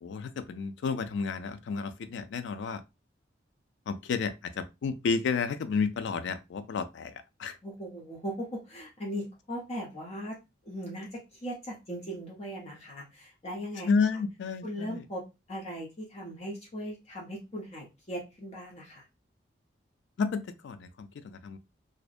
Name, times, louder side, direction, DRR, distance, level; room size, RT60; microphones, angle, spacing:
voice 1, 0.0-2.8 3.9-7.6 13.9-15.0 20.2-21.6, left 5 dB, 70° left, 0.3 m, -31 dB
voice 2, 7.6-10.3 10.6-13.9 14.6-15.2 15.5-19.0, equal, 35° left, 0.7 m, -38 dB
2.6 x 2.1 x 2.3 m
head